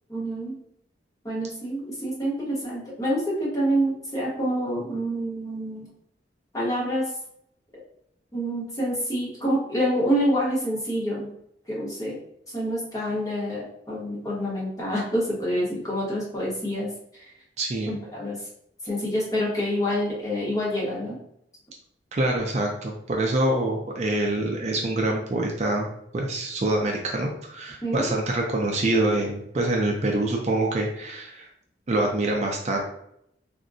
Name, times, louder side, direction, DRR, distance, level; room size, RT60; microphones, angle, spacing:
voice 1, 0.1-0.6 1.2-5.9 6.5-7.0 8.3-11.3 11.7-12.2 12.5-16.9 17.9-18.4 18.8-21.2 27.8-28.1, equal, 20° left, -6 dB, 1.0 m, -27 dB
voice 2, 17.6-17.9 22.1-31.5 31.9-32.8, right 2 dB, 40° right, 1 dB, 0.4 m, -25 dB
3.6 x 2.1 x 2.6 m, 0.74 s
head